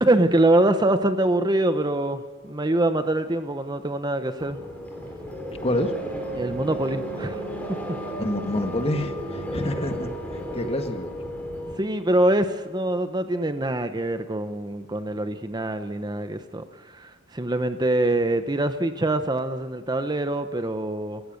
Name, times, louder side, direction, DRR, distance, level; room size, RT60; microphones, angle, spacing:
voice 1, 0.0-4.6 6.3-7.4 11.8-21.2, right 1 dB, 20° right, 9 dB, 1.0 m, -24 dB
sound 1, 4.4-11.8, right 1 dB, 5° left, 4.2 m, -33 dB
voice 2, 5.6-5.9 8.2-10.1 10.5-11.1, left 1 dB, 30° left, 7 dB, 1.7 m, -27 dB
28.0 x 15.5 x 6.6 m, 1.4 s
head